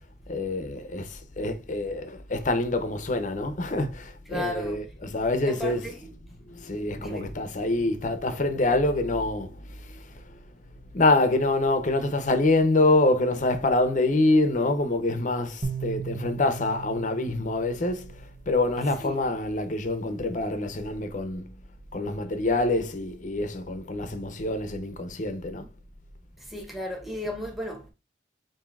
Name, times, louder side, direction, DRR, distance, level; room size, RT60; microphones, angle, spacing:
voice 1, 0.3-6.0 6.5-10.0 10.9-21.5 21.9-25.7, left 2 dB, 45° left, 0.7 m, -26 dB
voice 2, 4.3-4.9 5.5-6.1 7.0-7.3 19.0-19.3 26.4-27.9, left 1 dB, ahead, 1.0 m, -35 dB
sound 1, 15.6-18.9, right 6 dB, 50° right, 0.8 m, -37 dB
7.0 x 2.7 x 2.4 m
head